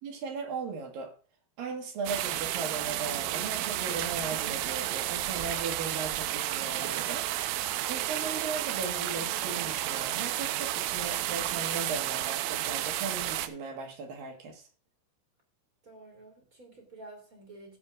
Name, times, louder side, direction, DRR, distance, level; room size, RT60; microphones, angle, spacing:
voice 1, 0.0-1.2 1.6-7.3 7.5-14.7, right 4 dB, 60° right, 2.7 m, -37 dB
sound 1, 2.1-13.5, right 14 dB, 90° right, 3.3 m, -32 dB
voice 2, 15.8-17.8, right 2 dB, 25° right, 2.3 m, -50 dB
18.5 x 7.5 x 2.5 m
omnidirectional pair, 5.7 m